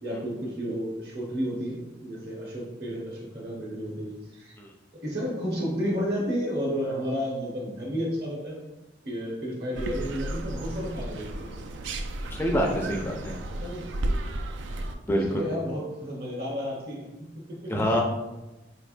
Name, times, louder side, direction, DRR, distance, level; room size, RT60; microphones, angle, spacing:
voice 1, 0.0-4.6 4.9-8.6 9.0-11.6 13.5-13.9 14.4-14.5 15.3-17.9, equal, 60° right, -2 dB, 1.1 m, -32 dB
sound 1, 9.7-15.0, right 1 dB, 80° right, 0.4 m, -33 dB
voice 2, 12.4-13.4 15.1-15.4 17.7-18.0, equal, 10° left, 0 dB, 0.4 m, -25 dB
4.2 x 3.3 x 2.5 m, 1.0 s
head